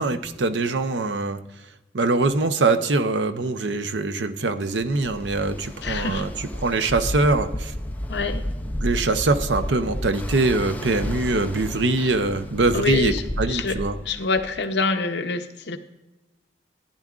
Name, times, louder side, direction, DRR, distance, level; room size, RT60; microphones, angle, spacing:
voice 1, 0.0-1.4 1.9-6.3 6.6-7.7 8.8-14.0, right 3 dB, 85° right, 10 dB, 0.7 m, -23 dB
Ocean, 4.8-14.6, equal, 10° left, 0.6 m, -32 dB
voice 2, 5.8-6.3 8.1-8.4 12.0-12.1 12.7-13.8 14.0-15.8, left 3 dB, 75° left, 7 dB, 0.7 m, -26 dB
14.5 x 10.5 x 2.4 m, 1.0 s
head